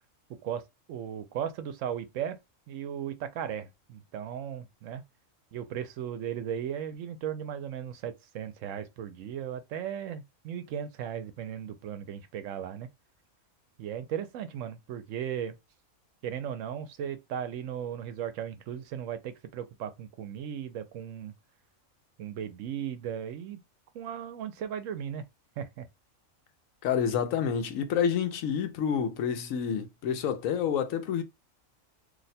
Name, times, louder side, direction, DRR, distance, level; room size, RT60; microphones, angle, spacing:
voice 1, 0.3-0.6 0.9-2.4 2.7-5.0 5.5-12.9 13.8-15.6 16.2-21.3 22.2-23.6 23.9-25.2 25.6-25.9, right 9 dB, 75° right, 0.9 m, -36 dB
voice 2, 26.8-31.2, left 7 dB, 85° left, 1.0 m, -28 dB
2.7 x 2.1 x 4.0 m
omnidirectional pair, 1.4 m